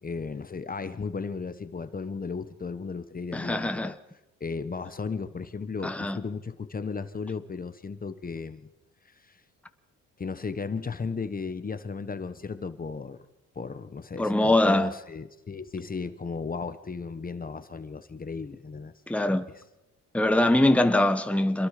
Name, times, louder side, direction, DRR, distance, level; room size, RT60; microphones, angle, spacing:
voice 1, 0.0-4.0 4.4-8.7 9.2-9.4 10.2-13.3 13.5-18.9 19.5-19.6, left 5 dB, 30° left, 1.2 m, -35 dB
voice 2, 3.3-3.9 5.8-6.2 14.2-14.9 19.1-19.5 20.1-21.7, left 1 dB, 5° left, 1.2 m, -23 dB
27.0 x 21.5 x 5.1 m
cardioid pair, 90°, 30 cm